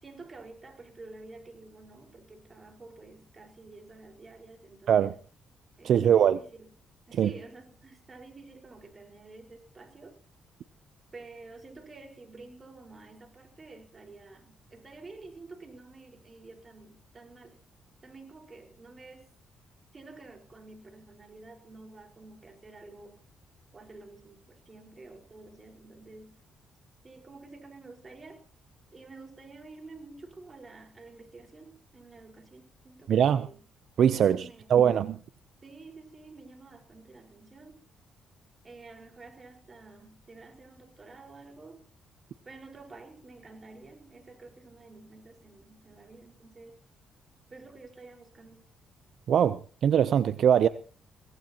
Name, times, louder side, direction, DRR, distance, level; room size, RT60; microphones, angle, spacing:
voice 1, 0.0-5.2 5.8-6.7 7.1-10.2 11.1-17.6 18.0-19.3 19.9-23.2 23.7-26.4 27.0-28.4 28.9-33.6 34.2-34.9 35.6-37.8 38.6-41.8 42.4-46.8 47.5-48.6, right 3 dB, 30° right, 4.8 m, -49 dB
voice 2, 5.8-6.4 7.1-7.3 33.1-33.5 34.0-35.2 49.3-50.7, right 9 dB, 65° right, 0.6 m, -22 dB
22.5 x 18.0 x 3.0 m
cardioid pair, 90°, 0 cm